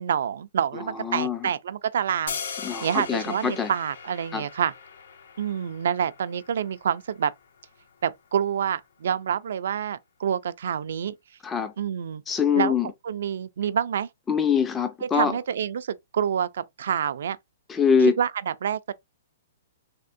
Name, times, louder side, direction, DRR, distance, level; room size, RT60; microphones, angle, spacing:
voice 1, 0.0-2.4 2.8-4.7 5.4-7.3 8.0-11.1 11.8-12.2 12.6-12.7 13.0-14.1 15.1-17.4 18.2-18.9, right 8 dB, 70° right, 0.3 m, -27 dB
voice 2, 0.7-1.5 2.6-3.7 4.3-4.4 11.4-11.7 12.3-12.9 14.3-15.3 17.7-18.2, left 6 dB, 15° left, 0.3 m, -24 dB
sound 1, 2.3-8.4, left 6 dB, 75° left, 0.6 m, -40 dB
3.5 x 2.1 x 2.5 m
hypercardioid pair, 155°, 0 cm